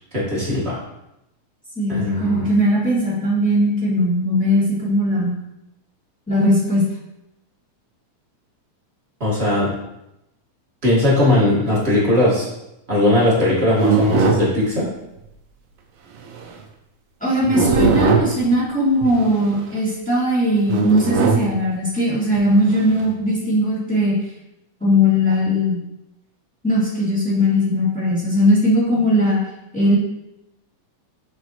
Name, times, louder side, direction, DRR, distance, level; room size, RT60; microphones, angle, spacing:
voice 1, 0.1-0.8 1.9-2.5 9.2-9.7 10.8-12.5 12.9-14.9, left 1 dB, 30° right, -7 dB, 1.2 m, -18 dB
voice 2, 1.7-5.3 6.3-6.8 17.2-24.2 24.8-25.8 26.6-30.0, equal, 5° left, -9 dB, 1.7 m, -19 dB
sound 1, 13.7-14.5 16.2-16.5 17.4-18.4 19.0-19.6 20.7-21.5 22.3-23.1, right 5 dB, 85° right, 1.3 m, -20 dB
6.1 x 5.8 x 3.0 m, 0.88 s
omnidirectional pair, 3.6 m